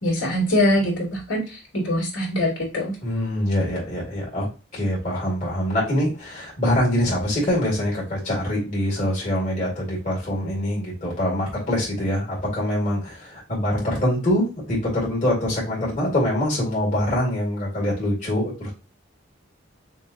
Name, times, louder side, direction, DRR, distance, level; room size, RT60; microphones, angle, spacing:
voice 1, 0.0-3.0, left 1 dB, 65° left, -2 dB, 2.7 m, -23 dB
voice 2, 3.0-4.5 4.7-18.7, left 1 dB, 40° left, -5 dB, 2.4 m, -24 dB
6.3 x 2.9 x 2.6 m, 0.30 s
head